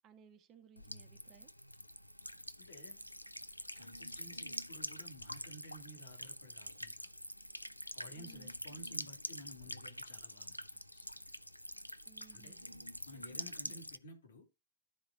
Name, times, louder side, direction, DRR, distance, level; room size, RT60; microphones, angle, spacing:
voice 1, 0.0-1.5 8.2-8.5 12.1-12.9 13.6-13.8, right 8 dB, 35° right, 1.6 m, -61 dB
Buzz / Water tap faucet / Trickle dribble, 0.8-14.0, equal, 90° left, 0.4 m, -46 dB
voice 2, 2.6-3.0 3.8-7.1 7.9-11.0 12.3-12.5 13.1-14.5, equal, 65° left, 2.8 m, -54 dB
11.5 x 4.7 x 3.8 m
figure-of-eight pair, 90°, 0 cm